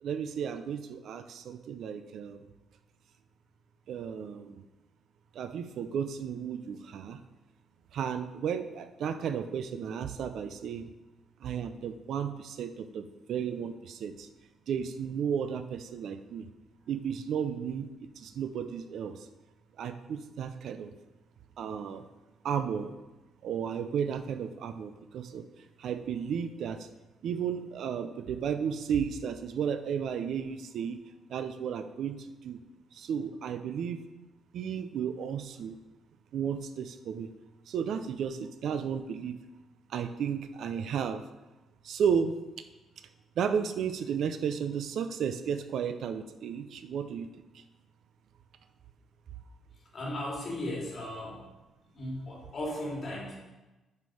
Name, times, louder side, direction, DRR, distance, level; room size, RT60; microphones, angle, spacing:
voice 1, 0.0-2.4 3.9-4.6 5.3-7.2 7.9-10.9 11.4-14.3 14.7-16.5 16.9-17.9 18.2-19.3 19.8-20.9 21.6-22.1 22.4-22.9 23.4-25.4 25.8-26.9 27.2-31.0 31.3-32.6 32.9-34.0 34.5-35.8 36.3-37.3 37.7-39.4 39.9-41.2 41.8-42.3 43.4-47.3, right 7 dB, 70° right, 10 dB, 0.5 m, -33 dB
voice 2, 49.9-51.5 51.9-53.3, left 1 dB, 45° left, -3 dB, 2.4 m, -36 dB
6.1 x 5.4 x 4.8 m, 1.1 s
cardioid pair, 90°, 0 cm